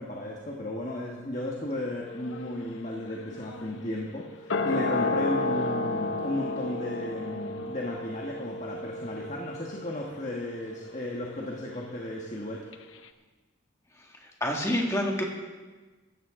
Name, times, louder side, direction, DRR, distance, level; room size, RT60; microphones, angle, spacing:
voice 1, 0.0-12.7, left 1 dB, 35° left, -2 dB, 1.4 m, -34 dB
sound 1, 2.1-12.4 12.7-12.8, left 2 dB, 80° left, 0.8 m, -33 dB
voice 2, 14.0-15.2, left 1 dB, 15° left, 0 dB, 1.9 m, -28 dB
15.5 x 13.5 x 3.7 m, 1.3 s
head